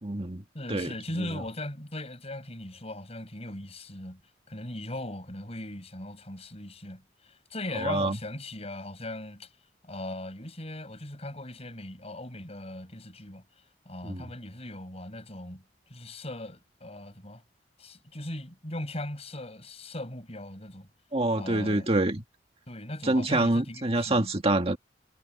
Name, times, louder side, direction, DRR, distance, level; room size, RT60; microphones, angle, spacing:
voice 1, 0.0-0.4 0.7-0.9 1.2-1.4 7.8-8.2 14.0-14.2 21.1-22.2 23.0-24.8, right 2 dB, 35° right, 1.9 m, -26 dB
voice 2, 0.5-4.2 4.5-9.5 9.8-13.4 13.9-17.4 17.8-20.9 21.4-21.9 22.7-24.3, left 1 dB, 35° left, 6.8 m, -39 dB
head